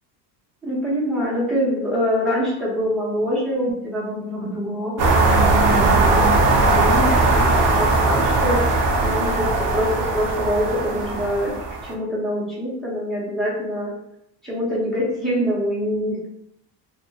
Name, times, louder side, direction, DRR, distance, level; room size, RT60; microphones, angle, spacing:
voice 1, 0.6-8.8 9.0-9.5 9.7-11.5 11.8-13.9 14.4-16.3, equal, ahead, -8 dB, 0.6 m, -25 dB
sound 1, 5.0-11.9, right 3 dB, 45° right, 0.5 m, -19 dB
2.7 x 2.1 x 2.7 m, 0.75 s
cardioid pair, 165°, 47 cm